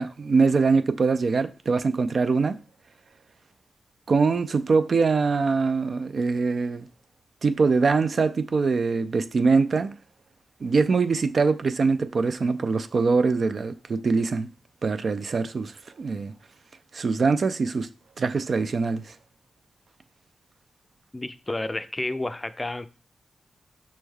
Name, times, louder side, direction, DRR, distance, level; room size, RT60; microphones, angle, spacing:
voice 1, 0.0-2.6 4.1-6.9 7.4-9.9 10.6-14.5 14.8-15.7 16.0-16.3 16.9-17.9 18.2-19.1, right 4 dB, 60° right, 0.3 m, -23 dB
voice 2, 21.1-22.9, left 2 dB, 25° left, 0.4 m, -30 dB
5.3 x 3.1 x 2.3 m
supercardioid pair, 45°, 0 cm